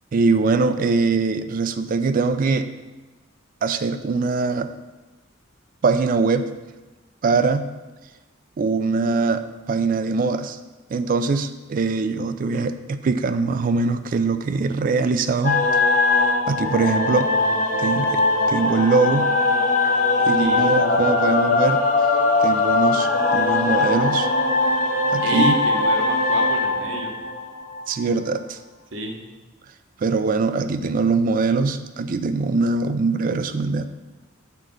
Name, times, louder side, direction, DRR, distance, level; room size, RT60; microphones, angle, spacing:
voice 1, 0.1-2.7 3.6-4.7 5.8-6.5 7.2-7.7 8.6-10.6 10.9-15.7 16.5-17.3 17.8-18.2 18.5-19.3 20.3-21.8 22.4-24.3 25.1-25.5 27.9-28.6 30.0-33.9, right 4 dB, 45° right, 10 dB, 0.3 m, -22 dB
sound 1, 15.4-28.0, left 3 dB, 40° left, 0.7 m, -20 dB
voice 2, 20.4-20.8 25.2-27.1 28.9-29.1, right 2 dB, 80° right, 1 dB, 1.1 m, -29 dB
6.6 x 3.8 x 5.1 m, 1.1 s
head